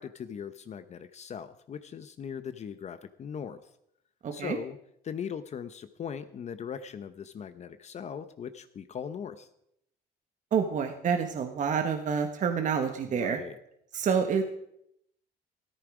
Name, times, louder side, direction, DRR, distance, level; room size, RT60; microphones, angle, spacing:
voice 1, 0.0-3.7 4.3-4.8 5.0-9.5 13.1-13.6, left 7 dB, 40° left, 11 dB, 0.8 m, -39 dB
voice 2, 4.2-4.6 10.5-13.4 13.9-14.4, right 6 dB, 50° right, 6 dB, 1.3 m, -28 dB
14.0 x 13.5 x 4.9 m, 0.77 s
cardioid pair, 110°, 17 cm